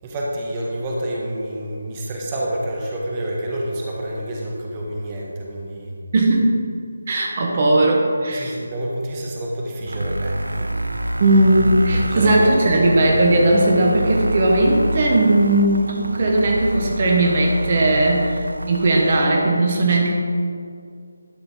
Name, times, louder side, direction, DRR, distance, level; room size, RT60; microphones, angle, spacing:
voice 1, 0.0-5.9 8.3-10.7 11.9-12.6, right 1 dB, 20° right, -3 dB, 1.2 m, -28 dB
voice 2, 6.1-6.6 7.1-8.5 11.2-20.2, right 1 dB, 35° right, -1 dB, 1.2 m, -17 dB
sound 1, 9.9-19.3, right 1 dB, 80° right, 0.4 m, -27 dB
11.5 x 5.7 x 4.4 m, 2.3 s
figure-of-eight pair, 155°, 0 cm